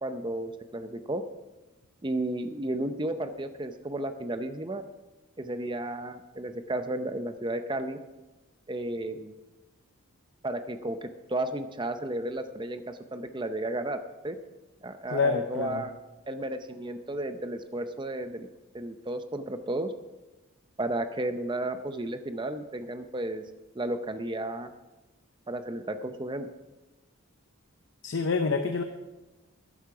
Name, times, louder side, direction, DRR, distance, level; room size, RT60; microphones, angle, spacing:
voice 1, 0.0-1.2 2.0-4.8 5.4-8.0 8.7-9.3 10.4-14.0 14.2-14.4 14.8-15.9 16.3-18.5 18.7-19.9 20.8-23.4 23.7-24.7 25.5-26.5, right 1 dB, 20° right, 9 dB, 0.6 m, -33 dB
voice 2, 15.1-15.8 28.0-28.8, left 4 dB, 55° left, 6 dB, 0.7 m, -27 dB
12.5 x 10.5 x 4.8 m, 1.1 s
head